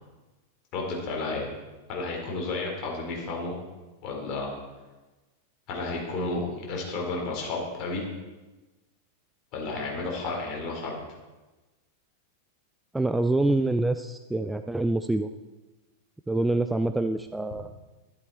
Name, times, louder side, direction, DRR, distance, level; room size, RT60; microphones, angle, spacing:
voice 1, 0.7-1.5 1.9-3.5 4.0-4.5 5.7-8.0 9.5-11.0, left 3 dB, 40° left, -1 dB, 3.9 m, -32 dB
voice 2, 12.9-15.3 16.3-17.7, right 2 dB, 5° right, 8 dB, 0.4 m, -26 dB
12.5 x 11.5 x 4.3 m, 1.2 s
figure-of-eight pair, 90°, 0 cm